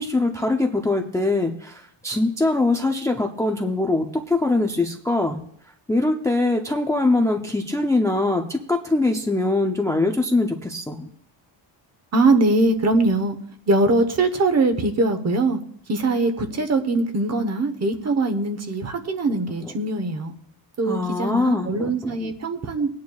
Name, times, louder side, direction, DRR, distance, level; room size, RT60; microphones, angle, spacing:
voice 1, 0.0-5.4 5.9-11.1 20.9-22.3, left 2 dB, 5° left, 3 dB, 0.5 m, -22 dB
voice 2, 12.1-13.4 13.7-15.6 15.9-20.3 20.8-22.9, right 2 dB, 30° right, 7 dB, 1.0 m, -22 dB
20.5 x 9.5 x 2.3 m, 0.64 s
cardioid pair, 160°, 48 cm